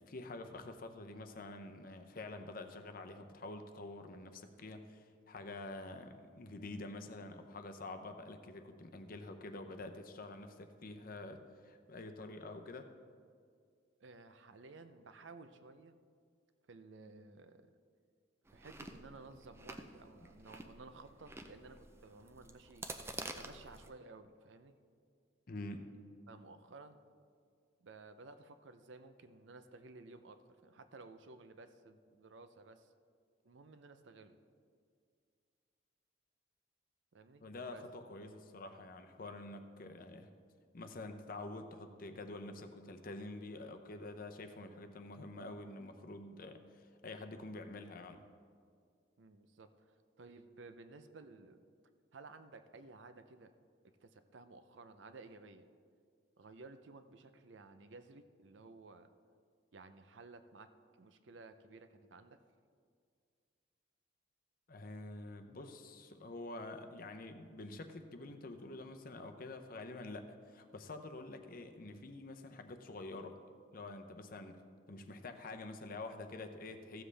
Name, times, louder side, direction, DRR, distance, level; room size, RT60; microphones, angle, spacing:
voice 1, 0.0-12.9 25.5-25.9 37.4-40.3 40.7-48.2 64.7-73.4 73.7-74.6 74.9-77.0, left 2 dB, 50° left, 7 dB, 0.7 m, -47 dB
voice 2, 14.0-16.0 16.7-17.7 18.5-22.9 23.4-24.7 26.3-27.0 27.8-32.9 33.4-34.4 37.1-37.4 37.7-37.8 49.2-51.6 52.1-53.5 54.0-55.7 56.4-59.1 59.7-60.7 61.0-62.4, right 3 dB, 75° right, 10 dB, 0.6 m, -55 dB
Chewing mastication, 18.5-23.9, right 2 dB, 15° right, 0.5 m, -49 dB
14.5 x 7.4 x 3.4 m, 2.1 s
head